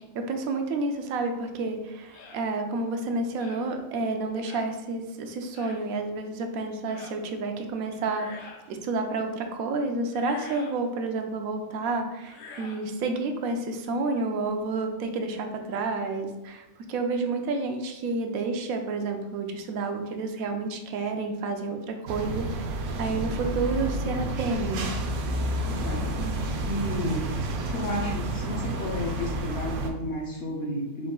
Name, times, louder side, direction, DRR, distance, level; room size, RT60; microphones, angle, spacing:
voice 1, 0.1-24.9, right 3 dB, 85° right, 5 dB, 1.0 m, -30 dB
sound 1, 2.1-2.4 3.4-3.7 4.5-4.7 5.5-5.8 6.9-7.2 8.0-8.7 10.1-10.8 12.2-12.9, left 4 dB, 90° left, 1.1 m, -46 dB
sound 2, 22.1-29.9, right 1 dB, 65° right, 0.7 m, -30 dB
voice 2, 25.6-27.3 27.7-31.1, left 1 dB, 60° left, 0 dB, 0.7 m, -32 dB
4.7 x 2.3 x 3.7 m, 1.0 s
omnidirectional pair, 1.4 m